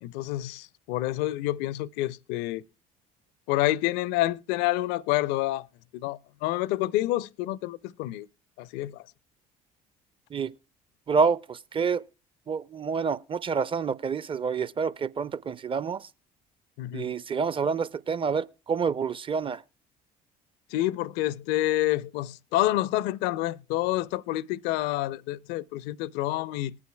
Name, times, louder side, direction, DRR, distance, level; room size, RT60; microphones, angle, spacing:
voice 1, 0.0-2.6 3.5-5.7 5.9-8.3 8.6-9.0 16.8-17.1 20.7-26.8, left 16 dB, 70° left, 0.5 m, -28 dB
voice 2, 11.1-12.0 12.5-16.1 16.9-19.6, right 5 dB, 30° right, 0.5 m, -28 dB
19.5 x 9.6 x 2.2 m
hypercardioid pair, 60°, 18 cm